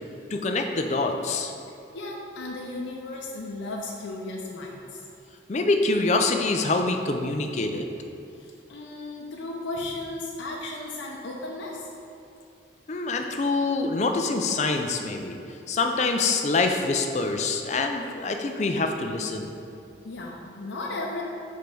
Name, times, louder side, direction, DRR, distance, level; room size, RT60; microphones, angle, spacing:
voice 1, 0.3-1.5 5.5-7.9 12.9-15.4 15.7-19.5, left 3 dB, 40° left, 4 dB, 0.4 m, -25 dB
voice 2, 1.9-5.0 8.3-11.9 20.0-21.2, left 2 dB, 85° left, -2 dB, 0.6 m, -35 dB
5.0 x 4.5 x 5.3 m, 2.7 s
head